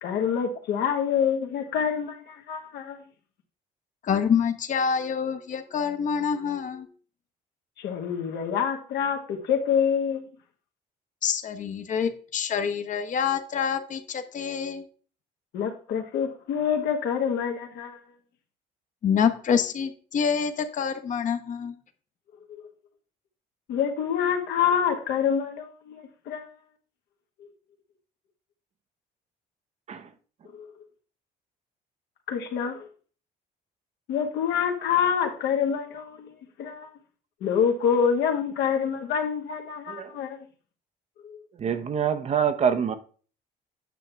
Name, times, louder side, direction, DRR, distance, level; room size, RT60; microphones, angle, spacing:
voice 1, 0.0-3.0 7.8-10.3 15.5-18.0 22.5-22.6 23.7-26.5 30.5-30.7 32.3-32.9 34.1-36.3 36.6-36.9 37.4-40.5 41.2-41.4, left 7 dB, 80° left, 1.5 m, -26 dB
voice 2, 4.1-6.9 11.2-14.8 19.0-21.7, left 7 dB, 50° left, 1.0 m, -26 dB
voice 3, 41.6-42.9, right 7 dB, 40° right, 0.7 m, -25 dB
9.1 x 6.0 x 3.4 m
cardioid pair, 110°, 17 cm